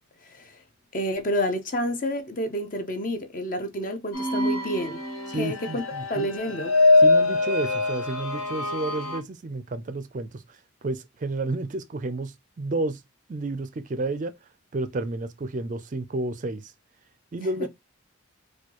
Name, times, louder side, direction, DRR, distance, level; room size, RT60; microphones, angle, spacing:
voice 1, 0.9-5.0 5.4-5.8 6.1-6.7 17.6-17.7, equal, 40° left, 0.6 m, -29 dB
sound 1, 4.1-9.2, left 2 dB, 80° left, 0.9 m, -23 dB
voice 2, 5.3-6.3 7.0-13.0 13.3-14.3 14.7-16.7 17.3-17.7, right 2 dB, 35° right, 0.4 m, -31 dB
4.3 x 2.3 x 2.9 m
head